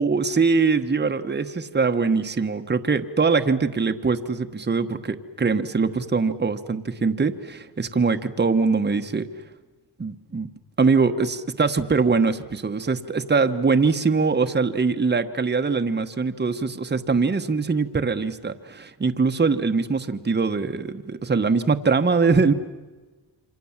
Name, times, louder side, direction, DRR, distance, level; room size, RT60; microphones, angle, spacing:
voice 1, 0.0-9.3 10.0-10.5 10.8-22.5, right 4 dB, 25° right, 7 dB, 1.3 m, -22 dB
28.0 x 25.5 x 7.4 m, 1.3 s
cardioid pair, 95°, 43 cm